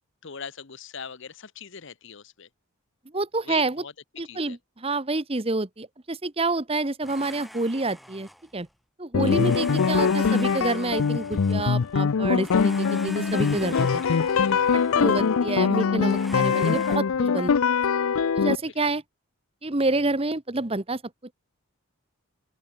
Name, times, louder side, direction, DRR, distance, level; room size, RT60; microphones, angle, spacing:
voice 1, 0.2-2.5 3.4-3.9 4.2-4.6 9.2-9.3 13.7-15.0 18.6-18.9, left 6 dB, 55° left, 1.0 m, -42 dB
voice 2, 3.1-3.8 4.2-8.7 9.0-14.0 14.7-17.5 18.3-19.0 19.6-21.0, right 2 dB, 25° right, 1.1 m, -28 dB
Domestic sounds home sounds, 7.0-8.7 9.2-12.0 12.4-15.4 16.0-17.0, equal, ahead, 0.7 m, -43 dB
sound 1, 9.1-18.6, left 6 dB, 75° left, 0.5 m, -23 dB
open air
head